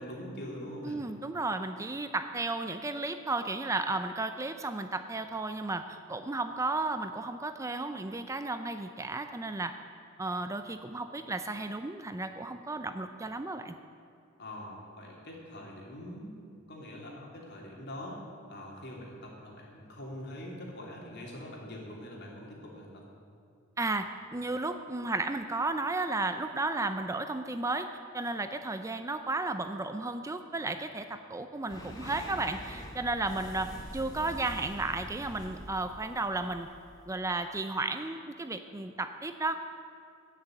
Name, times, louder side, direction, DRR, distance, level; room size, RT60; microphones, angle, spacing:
voice 1, 0.0-1.0 14.4-16.3 16.7-18.2 18.5-23.0, left 1 dB, 55° left, -2 dB, 3.1 m, -43 dB
voice 2, 0.8-9.7 10.2-13.8 23.8-27.9 28.1-36.7 37.1-39.6, right 2 dB, 15° right, 8 dB, 0.4 m, -33 dB
sound 1, 31.7-37.2, equal, 20° left, 1.6 m, -45 dB
15.5 x 6.8 x 8.9 m, 2.6 s
head